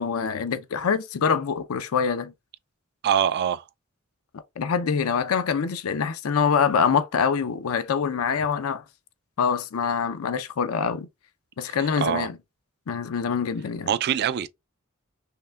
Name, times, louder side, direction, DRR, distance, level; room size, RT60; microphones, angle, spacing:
voice 1, 0.0-2.3 4.6-8.8 9.4-11.1 11.6-12.4 12.9-13.9, left 6 dB, 75° left, 0.5 m, -25 dB
voice 2, 3.0-3.6 11.8-12.3 13.9-14.5, right 9 dB, 50° right, 0.3 m, -24 dB
5.6 x 2.2 x 2.2 m
head